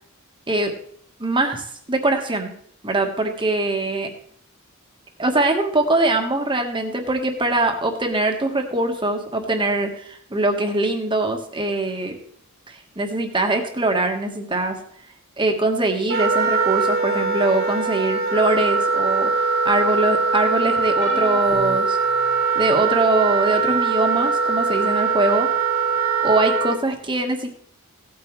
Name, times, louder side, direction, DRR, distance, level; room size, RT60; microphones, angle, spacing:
voice 1, 1.2-2.5 2.8-4.1 5.2-12.2 12.7-14.8 15.4-22.0 22.5-25.5 26.2-27.6, right 2 dB, 20° right, 4 dB, 1.4 m, -22 dB
Wind instrument woodwind instrument, 16.1-26.8, right 4 dB, 45° right, 1.3 m, -21 dB
sound 1, 21.0-22.8 23.5-23.8 25.1-25.2, left 3 dB, 30° left, 1.0 m, -36 dB
16.5 x 8.8 x 3.2 m, 0.62 s
head